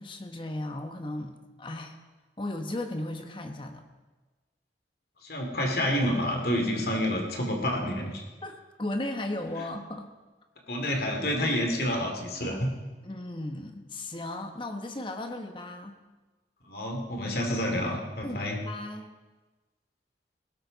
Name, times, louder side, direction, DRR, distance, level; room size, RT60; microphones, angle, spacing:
voice 1, 0.0-2.0 2.4-3.8 8.4-10.1 13.0-16.0 18.2-19.1, left 1 dB, 25° left, 5 dB, 1.1 m, -36 dB
voice 2, 5.2-8.2 10.7-12.7 16.6-18.6, equal, 55° left, 1 dB, 2.5 m, -28 dB
18.5 x 12.5 x 4.0 m, 1.2 s
head